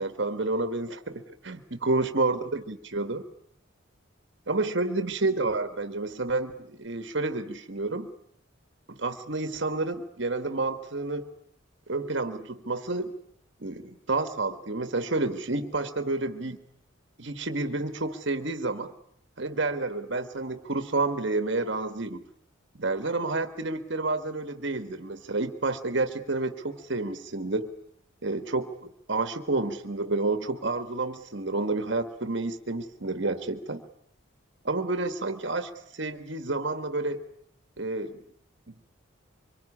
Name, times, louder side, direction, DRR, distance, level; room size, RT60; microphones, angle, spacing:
voice 1, 0.0-3.2 4.5-8.1 8.9-11.3 11.9-13.1 13.6-16.6 17.2-18.9 19.4-22.3 22.7-27.7 28.2-33.8 34.6-37.2 37.8-38.2 38.7-38.8, right 2 dB, 60° right, 8 dB, 1.5 m, -30 dB
25.5 x 23.5 x 9.9 m, 0.71 s
head